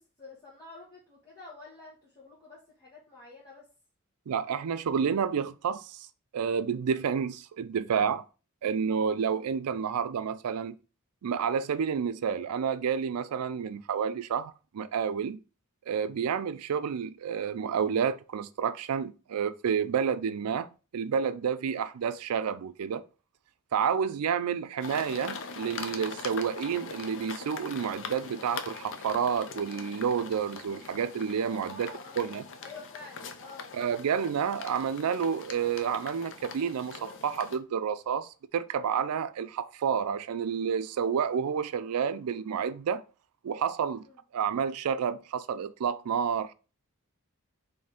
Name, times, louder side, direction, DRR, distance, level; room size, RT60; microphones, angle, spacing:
voice 1, 0.0-3.7 31.7-32.3 32.6-33.7 43.9-44.2, left 3 dB, 15° left, 1.2 m, -49 dB
voice 2, 4.3-6.1 6.3-8.2 8.6-10.8 11.2-15.4 15.9-20.7 20.9-23.0 23.7-31.9 32.2-32.4 33.7-43.0 43.4-44.0 44.3-46.5, right 7 dB, 90° right, 0.4 m, -30 dB
sound 1, 24.8-37.6, left 5 dB, 60° left, 0.5 m, -42 dB
4.1 x 2.7 x 3.6 m
head